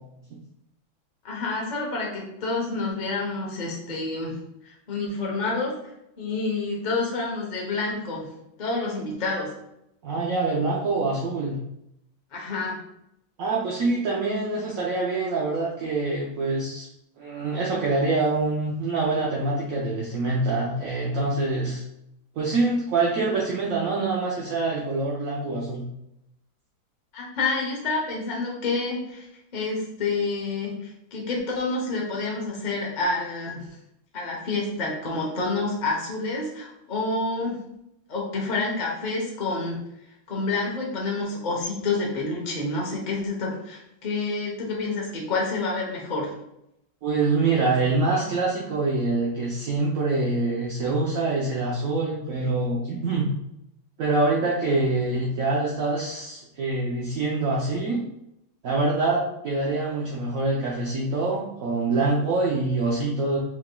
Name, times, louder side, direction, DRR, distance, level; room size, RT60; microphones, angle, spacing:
voice 1, 1.2-4.3 4.6-5.8 6.2-8.3 8.6-9.5 12.3-12.8 27.1-29.3 29.5-33.7 34.1-37.6 38.1-39.8 40.3-46.3, left 3 dB, 60° left, -3 dB, 0.4 m, -28 dB
voice 2, 10.0-11.6 13.4-16.9 17.2-21.8 22.4-25.9 47.0-53.3 54.0-58.0 58.6-63.4, right 3 dB, 70° right, -4 dB, 0.8 m, -25 dB
4.7 x 3.5 x 2.3 m, 0.82 s
omnidirectional pair, 2.2 m